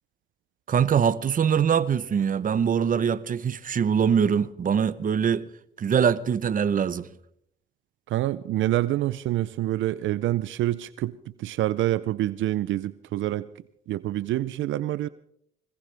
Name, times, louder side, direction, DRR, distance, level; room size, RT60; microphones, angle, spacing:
voice 1, 0.7-5.4 5.8-7.1, right 7 dB, 45° right, 0.8 m, -23 dB
voice 2, 8.1-13.5 13.9-15.1, right 14 dB, 75° right, 0.5 m, -27 dB
21.0 x 20.0 x 3.4 m
cardioid pair, 90°, 20 cm